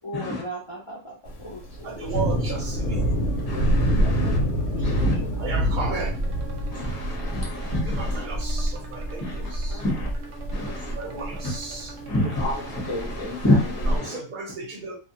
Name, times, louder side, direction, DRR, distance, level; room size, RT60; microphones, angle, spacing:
voice 1, 0.0-2.2 4.0-5.9 6.9-7.0 7.4-7.5 9.7-9.8 10.5-11.3, equal, 55° left, -5 dB, 0.3 m, -40 dB
Thunder, 1.3-14.0, equal, 90° left, 1.0 m, -27 dB
voice 2, 1.8-3.2 5.4-6.2 7.7-9.8 11.0-11.9 13.9-15.0, right 4 dB, 55° right, 0 dB, 0.6 m, -34 dB
sound 1, 2.4-13.2, right 5 dB, 85° right, 1.0 m, -45 dB
voice 3, 3.5-4.4 4.8-5.2 6.7-8.2 9.2-10.1 10.5-10.9 12.1-14.2, left 1 dB, 20° left, -3 dB, 0.7 m, -28 dB
2.1 x 2.1 x 2.8 m, 0.34 s
omnidirectional pair, 1.3 m